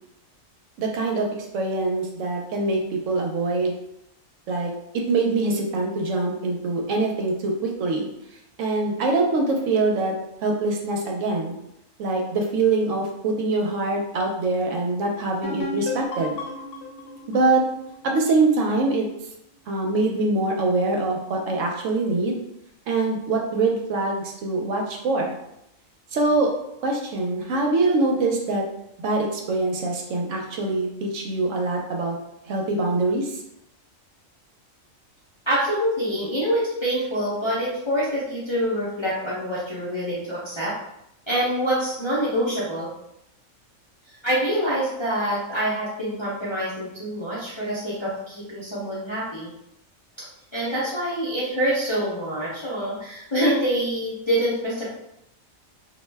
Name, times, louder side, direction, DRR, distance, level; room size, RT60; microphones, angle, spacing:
voice 1, 0.8-1.3 1.5-3.8 4.5-8.1 8.6-10.1 10.4-11.6 12.0-16.3 17.3-17.6 18.0-19.0 19.7-22.4 22.9-25.3 26.1-26.5 26.8-28.6 29.0-32.1 32.5-33.3, right 3 dB, 75° right, 1 dB, 0.9 m, -24 dB
sound 1, 15.4-19.0, left 2 dB, 85° left, 1.0 m, -34 dB
voice 2, 35.5-40.7 41.3-42.9 44.1-49.5 50.5-54.9, equal, 35° left, -9 dB, 0.4 m, -26 dB
2.4 x 2.1 x 3.2 m, 0.79 s
omnidirectional pair, 1.4 m